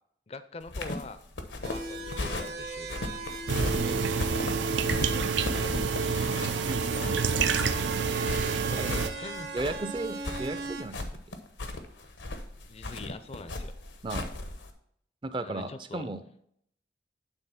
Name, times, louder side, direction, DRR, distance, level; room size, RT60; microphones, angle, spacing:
voice 1, 0.3-1.2 1.6-3.0 7.2-7.4 8.4-9.9 12.7-13.7 15.4-16.1, left 3 dB, 35° left, 11 dB, 0.4 m, -43 dB
sound 1, 0.6-14.7, left 2 dB, 90° left, 1.0 m, -36 dB
sound 2, 1.6-10.8, right 3 dB, 65° right, 1.4 m, -38 dB
sound 3, 3.5-9.1, right 5 dB, 85° right, 0.6 m, -28 dB
voice 2, 3.6-4.3 5.0-5.3 6.5-7.3 8.8-9.0 9.5-11.1 14.0-14.3 15.2-16.2, right 2 dB, 25° right, 11 dB, 0.4 m, -36 dB
8.9 x 3.9 x 5.7 m, 0.70 s
head